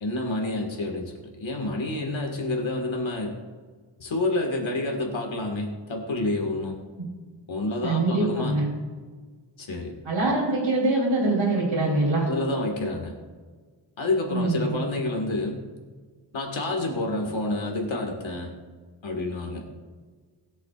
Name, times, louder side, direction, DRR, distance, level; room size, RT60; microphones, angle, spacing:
voice 1, 0.0-3.4 4.0-6.8 7.5-8.6 9.6-9.9 12.2-13.1 14.0-15.6 16.3-18.5 19.0-19.7, left 2 dB, 80° left, 1 dB, 1.9 m, -28 dB
voice 2, 7.8-8.6 10.0-12.3 14.3-14.7, right 2 dB, 70° right, -8 dB, 3.6 m, -23 dB
20.5 x 7.8 x 2.5 m, 1.5 s
wide cardioid pair, 125°, 46 cm